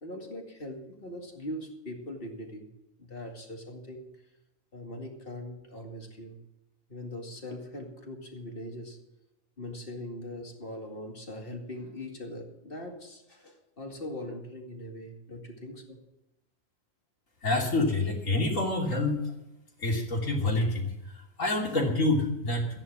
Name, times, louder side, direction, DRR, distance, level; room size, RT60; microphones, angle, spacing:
voice 1, 0.0-2.7 3.0-4.1 4.7-6.4 6.9-9.0 9.6-16.0, left 1 dB, 45° left, 2 dB, 2.5 m, -41 dB
voice 2, 17.4-19.3 19.8-22.7, left 2 dB, 75° left, -1 dB, 3.5 m, -27 dB
14.0 x 10.5 x 6.1 m, 0.93 s
omnidirectional pair, 1.4 m